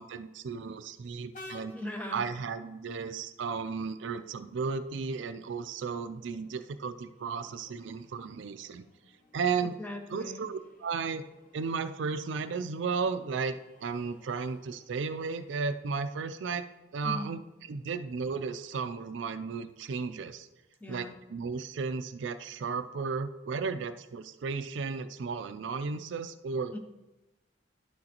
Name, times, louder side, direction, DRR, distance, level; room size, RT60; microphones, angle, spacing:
voice 1, 0.0-1.7 2.1-8.8 9.3-9.7 10.1-11.2 11.5-13.5 13.8-16.7 16.9-17.4 17.7-20.5 20.9-26.7, right 5 dB, 70° right, 11 dB, 0.4 m, -34 dB
Train, 1.3-18.6, left 2 dB, 45° left, 1.2 m, -58 dB
voice 2, 1.7-2.2 9.8-10.4 17.0-17.4 20.8-21.2 26.7-26.8, left 1 dB, 10° left, 4 dB, 0.8 m, -39 dB
11.0 x 6.3 x 2.9 m, 1.0 s
head